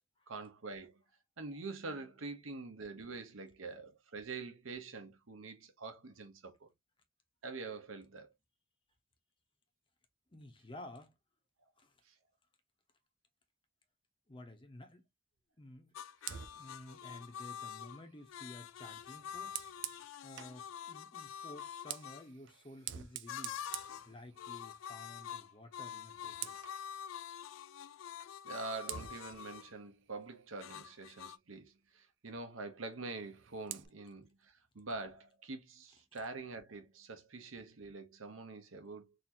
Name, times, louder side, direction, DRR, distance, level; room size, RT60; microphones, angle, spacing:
voice 1, 0.3-1.0 1.4-6.7 7.4-8.3 12.0-12.1 28.4-39.1, right 3 dB, 90° right, 0.9 m, -45 dB
voice 2, 10.3-11.1 11.8-12.0 14.3-15.1 15.6-15.9 16.5-19.6 19.9-23.6 24.1-26.6 36.1-36.2, left 1 dB, 25° left, 0.9 m, -53 dB
sound 1, 15.9-22.2 23.3-24.1 24.4-29.7 30.6-31.4, left 9 dB, 75° left, 0.3 m, -46 dB
Fire, 16.2-20.6 21.5-24.8 25.1-25.4 25.7-26.8 28.2-28.3 28.9-31.2 33.1-33.9, right 11 dB, 65° right, 0.5 m, -48 dB
4.2 x 2.7 x 2.8 m
head